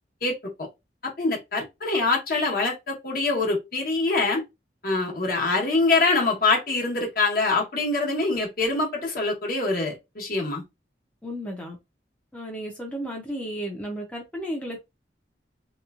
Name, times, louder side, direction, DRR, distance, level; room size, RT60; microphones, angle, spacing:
voice 1, 0.2-0.7 1.0-4.4 4.8-10.6, left 3 dB, 55° left, 1.0 m, -24 dB
voice 2, 11.2-11.8 12.3-14.8, equal, 5° left, 0.5 m, -33 dB
2.9 x 2.2 x 2.3 m
head